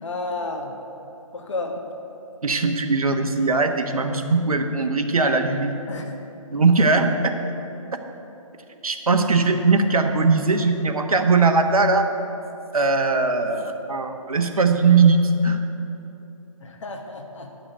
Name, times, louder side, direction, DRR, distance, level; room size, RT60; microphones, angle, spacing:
voice 1, 0.0-0.8 1.3-1.8 5.9-6.2 16.6-17.5, left 2 dB, 55° left, 3 dB, 1.4 m, -31 dB
voice 2, 2.4-5.8 6.5-7.3 8.8-12.1 12.7-15.6, right 4 dB, 75° right, 5 dB, 1.2 m, -20 dB
10.0 x 6.0 x 8.1 m, 2.8 s
hypercardioid pair, 155°, 18 cm